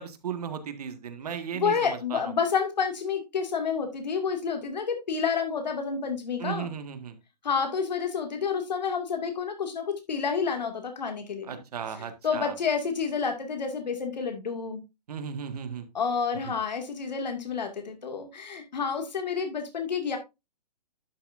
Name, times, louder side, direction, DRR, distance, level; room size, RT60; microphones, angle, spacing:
voice 1, 0.0-2.2 6.4-7.2 11.5-12.5 15.1-15.9 16.5-16.6, right 7 dB, 65° right, 1.8 m, -36 dB
voice 2, 1.5-6.7 7.4-11.6 12.0-14.8 15.9-20.2, left 6 dB, 85° left, 2.3 m, -29 dB
11.5 x 7.1 x 2.6 m
hypercardioid pair, 155°, 21 cm